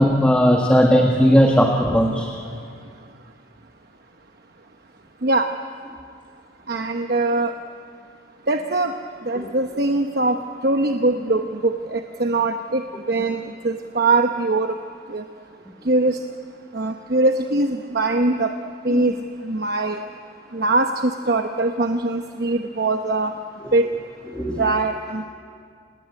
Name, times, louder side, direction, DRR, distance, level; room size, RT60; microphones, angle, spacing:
voice 1, 0.0-2.3 9.3-9.5 18.9-19.1 23.6-23.7 24.3-24.7, equal, 5° left, 1 dB, 1.6 m, -17 dB
voice 2, 6.7-7.5 8.5-8.9 9.3-10.4 10.6-12.8 13.1-14.7 15.1-15.2 15.9-16.2 16.7-18.5 18.8-19.1 19.4-20.0 20.5-23.3 23.7-23.9 24.6-25.3, right 2 dB, 55° right, 5 dB, 1.0 m, -21 dB
29.5 x 19.0 x 8.6 m, 2.2 s
head